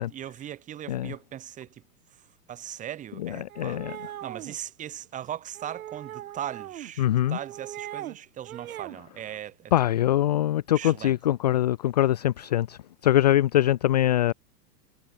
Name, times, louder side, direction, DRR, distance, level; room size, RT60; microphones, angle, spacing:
voice 1, 0.0-1.8 2.5-3.8 4.2-9.7 10.7-11.2, right 11 dB, 15° right, 6.1 m, -39 dB
voice 2, 3.2-4.0 7.0-7.4 9.7-14.3, left 13 dB, 25° left, 0.6 m, -23 dB
sound 1, 3.5-4.6 5.6-6.9 7.3-8.2 8.5-9.0, right 12 dB, 55° right, 7.9 m, -39 dB
supercardioid pair, 175°, 49 cm